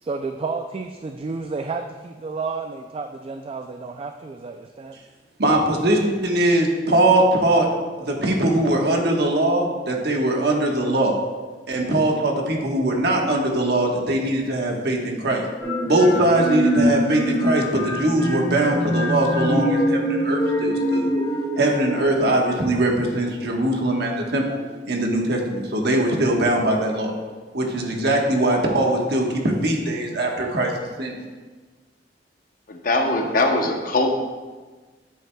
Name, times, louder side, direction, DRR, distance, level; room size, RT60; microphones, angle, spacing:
voice 1, 0.0-5.0, right 4 dB, 35° right, 6 dB, 0.3 m, -31 dB
voice 2, 5.4-7.7 8.0-11.2 11.7-15.4 15.8-21.1 21.6-24.6 24.9-27.1 27.5-30.7 31.0-31.1, right 1 dB, 65° right, 0 dB, 1.2 m, -21 dB
sound 1, 15.6-23.3, equal, 20° left, 2.2 m, -24 dB
voice 3, 32.7-34.1, left 2 dB, 50° left, 4 dB, 0.8 m, -21 dB
9.2 x 7.8 x 2.2 m, 1.3 s
head